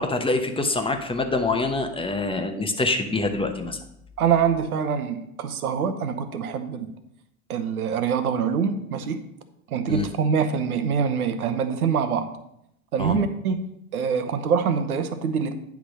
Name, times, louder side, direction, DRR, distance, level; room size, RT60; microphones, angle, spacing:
voice 1, 0.0-3.8 9.9-10.1 13.0-13.2, left 3 dB, 10° left, 5 dB, 1.0 m, -25 dB
voice 2, 4.2-6.9 7.5-9.2 9.7-12.3 12.9-13.6 13.9-15.5, right 6 dB, 85° right, 10 dB, 0.9 m, -24 dB
9.9 x 3.5 x 6.2 m, 0.78 s
hypercardioid pair, 90°, 43 cm